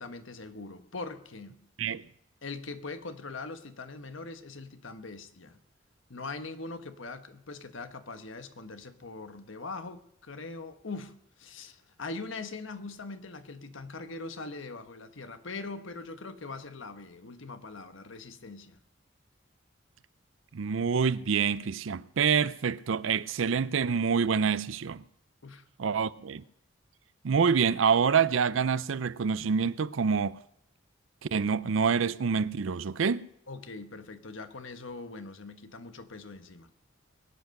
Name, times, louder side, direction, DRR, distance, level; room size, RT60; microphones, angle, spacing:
voice 1, 0.0-1.6 2.4-5.6 6.1-18.8 25.4-25.7 33.5-36.7, left 3 dB, 85° left, 1.2 m, -42 dB
voice 2, 20.5-25.0 25.8-26.4 27.2-30.4 31.3-33.3, right 6 dB, 85° right, 0.5 m, -26 dB
22.0 x 8.2 x 6.4 m
head